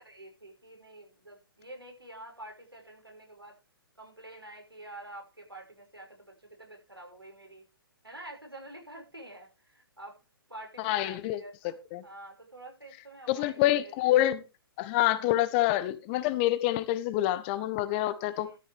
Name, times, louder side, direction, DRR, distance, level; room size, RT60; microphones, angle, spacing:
voice 1, 0.0-3.6 4.0-7.6 8.0-10.2 10.5-13.9 18.4-18.6, right 1 dB, 85° right, 5.7 m, -48 dB
voice 2, 10.8-11.4 11.9-12.0 13.3-14.4 14.8-18.5, left 14 dB, 25° left, 0.8 m, -27 dB
13.0 x 9.9 x 3.5 m
figure-of-eight pair, 125°, 12 cm